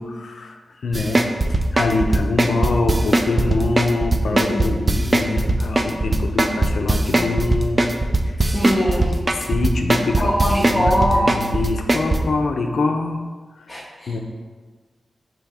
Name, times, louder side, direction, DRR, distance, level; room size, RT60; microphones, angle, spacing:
voice 1, 0.0-7.8 8.2-8.5 9.5-13.2 13.6-13.8 14.1-14.2, left 3 dB, 75° left, 4 dB, 0.4 m, -24 dB
sound 1, 0.9-12.2, right 2 dB, 25° right, 0.3 m, -18 dB
voice 2, 4.3-5.0 8.4-9.2 10.2-11.3 13.7-14.2, equal, 10° left, -8 dB, 0.7 m, -22 dB
5.4 x 2.8 x 3.4 m, 1.4 s
wide cardioid pair, 110°, 0 cm